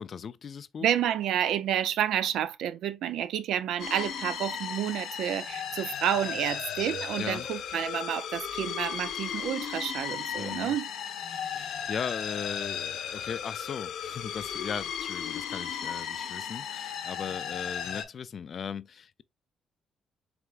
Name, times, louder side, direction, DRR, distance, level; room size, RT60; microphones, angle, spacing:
voice 1, 0.0-0.9 7.2-7.5 10.4-10.7 11.3-19.2, left 7 dB, 50° left, 0.3 m, -38 dB
voice 2, 0.8-10.9, right 10 dB, 80° right, 0.4 m, -30 dB
sound 1, 3.8-18.0, left 8 dB, 75° left, 0.9 m, -35 dB
4.7 x 3.4 x 2.3 m
cardioid pair, 90°, 0 cm